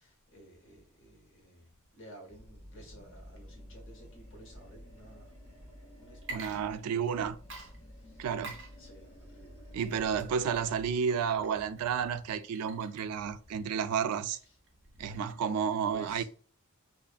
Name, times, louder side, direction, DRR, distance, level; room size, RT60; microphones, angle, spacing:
voice 1, 0.0-5.6 6.0-7.1 8.0-8.3 8.8-10.2 13.5-13.6 14.3-14.5 14.8-15.2 15.9-16.2, right 1 dB, 60° left, 1.1 m, -53 dB
Animal, 2.3-6.8 7.1-11.0, equal, 10° right, 1.3 m, -52 dB
Water / Liquid, 6.1-7.2 7.5-15.7, right 3 dB, 55° right, 0.7 m, -49 dB
voice 2, 6.3-7.4 8.2-8.6 9.7-14.4 15.0-16.2, right 7 dB, 85° right, 0.3 m, -31 dB
2.6 x 2.4 x 2.3 m
head